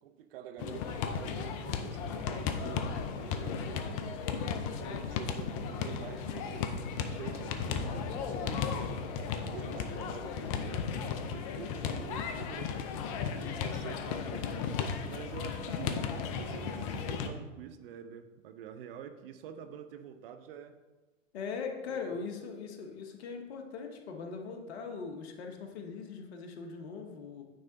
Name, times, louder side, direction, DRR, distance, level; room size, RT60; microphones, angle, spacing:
voice 1, 0.0-4.2 4.7-8.7 9.1-12.7 13.2-14.5 15.0-16.0 16.4-20.8 21.9-22.2, right 8 dB, 45° right, 8 dB, 0.6 m, -47 dB
sound 1, 0.6-17.3, left 6 dB, 25° left, 0.4 m, -35 dB
voice 2, 21.3-27.4, left 5 dB, 50° left, 4 dB, 1.1 m, -40 dB
9.0 x 3.4 x 3.9 m, 1.2 s
hypercardioid pair, 110°, 40 cm